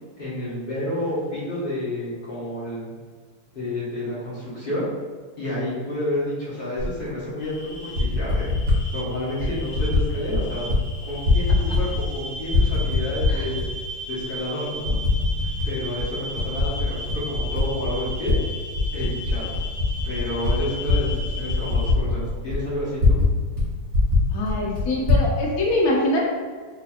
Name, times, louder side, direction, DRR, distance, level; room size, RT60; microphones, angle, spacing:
voice 1, 0.2-2.9 3.5-4.9 5.4-8.5 8.9-10.7 11.0-13.6 14.1-14.9 15.6-18.4 18.9-19.5 20.0-23.2, left 1 dB, 30° left, -10 dB, 1.1 m, -30 dB
Typing, 6.8-6.9 7.7-8.8 9.4-10.0 10.3-10.8 11.1-12.2 12.5-13.7 14.2-14.3 14.9-15.7 16.0-18.4 18.7-23.3 23.6-23.7 23.9-25.3, left 3 dB, 50° right, 1.2 m, -22 dB
sound 1, 7.4-21.9, equal, 80° left, 2.0 m, -36 dB
voice 2, 24.3-26.2, left 1 dB, 65° left, -3 dB, 0.9 m, -23 dB
4.3 x 2.8 x 2.4 m, 1.5 s
omnidirectional pair, 2.3 m